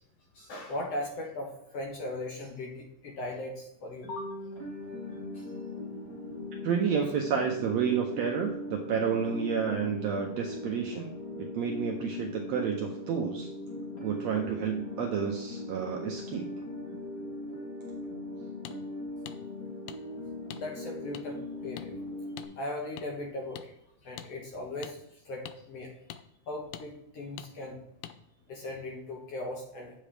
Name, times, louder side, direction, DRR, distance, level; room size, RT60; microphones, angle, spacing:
voice 1, 0.3-4.3 5.3-5.5 20.5-21.4 21.6-21.9 22.6-23.7 24.0-25.9 26.5-27.8 28.5-29.9, left 1 dB, 65° left, 1 dB, 1.7 m, -38 dB
sound 1, 4.0-22.5, left 2 dB, 30° left, 2.6 m, -40 dB
voice 2, 6.6-11.1 11.4-13.5 14.0-16.5, right 7 dB, 80° right, 2 dB, 1.6 m, -30 dB
sound 2, 18.7-18.8 19.3-19.4 19.9-20.0 20.5-20.6 21.1-21.2 21.8-21.9 22.4-22.5 23.0-23.1 23.6-23.7 24.2-24.3 24.8-24.9 25.5-25.6 26.1-26.2 26.7-26.9 27.4-27.5 28.0-28.2, left 11 dB, 80° left, 1.8 m, -43 dB
8.8 x 7.5 x 3.3 m, 0.78 s
omnidirectional pair, 3.8 m